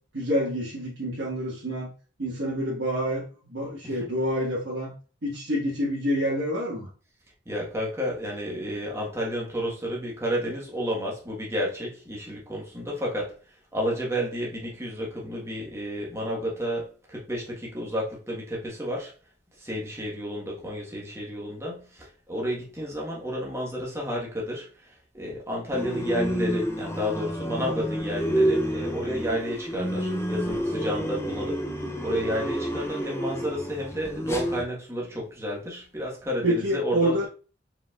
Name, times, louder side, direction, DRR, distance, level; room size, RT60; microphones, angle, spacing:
voice 1, 0.1-1.9 2.2-4.9 5.2-6.9 36.4-37.3, equal, 75° right, 1.5 m, -27 dB
voice 2, 7.4-13.4 13.7-19.1 19.6-31.7 32.0-37.3, equal, 15° right, 1.3 m, -31 dB
sound 1, 25.7-34.6, right 1 dB, 15° left, 0.5 m, -29 dB
4.8 x 4.1 x 2.4 m
head